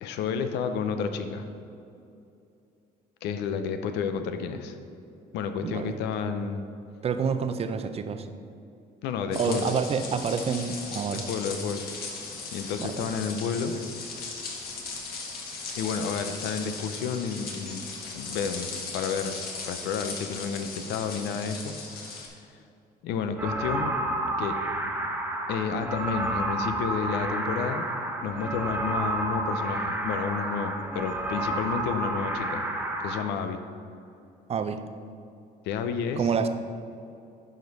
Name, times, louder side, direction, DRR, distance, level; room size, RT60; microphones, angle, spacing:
voice 1, 0.0-1.5 3.2-4.8 5.3-6.7 9.0-9.7 11.1-11.9 12.5-13.8 15.8-19.3 19.7-22.3 23.0-23.9 24.4-24.6 25.5-27.9 28.2-32.6 33.0-33.6 35.6-36.2, left 6 dB, 85° left, 8 dB, 0.7 m, -31 dB
voice 2, 5.6-5.9 7.0-8.3 9.3-11.2 12.8-13.1 34.5-34.8 36.2-36.5, right 6 dB, 35° right, 9 dB, 0.6 m, -28 dB
sound 1, 9.3-22.3, left 4 dB, 65° left, 1.6 m, -38 dB
sound 2, 23.4-33.2, right 1 dB, 10° right, 1.0 m, -30 dB
11.0 x 5.2 x 4.0 m, 2.6 s
cardioid pair, 110°, 17 cm